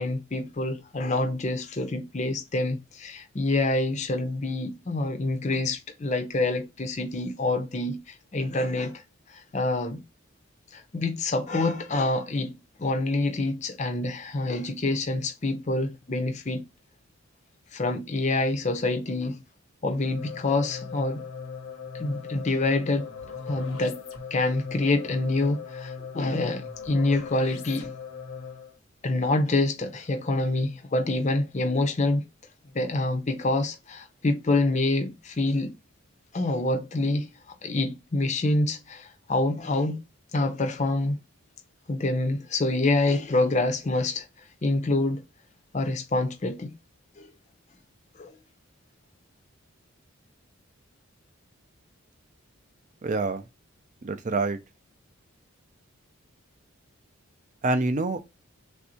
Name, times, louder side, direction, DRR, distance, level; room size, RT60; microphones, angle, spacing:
voice 1, 0.0-9.0 9.3-10.0 10.7-12.5 12.8-16.6 17.7-19.4 19.8-21.2 21.9-23.1 23.4-24.0 24.3-27.9 29.0-32.2 32.7-35.7 36.3-37.3 37.6-40.0 40.3-41.2 41.9-44.3 44.6-45.2 45.7-46.7 47.2-47.3 48.2-48.3, left 2 dB, 35° left, 0.6 m, -26 dB
sound 1, 20.0-28.8, left 5 dB, 85° left, 0.9 m, -39 dB
voice 2, 53.0-53.4 54.0-54.6 57.6-58.3, right 3 dB, 35° right, 0.4 m, -26 dB
3.4 x 2.6 x 4.3 m
head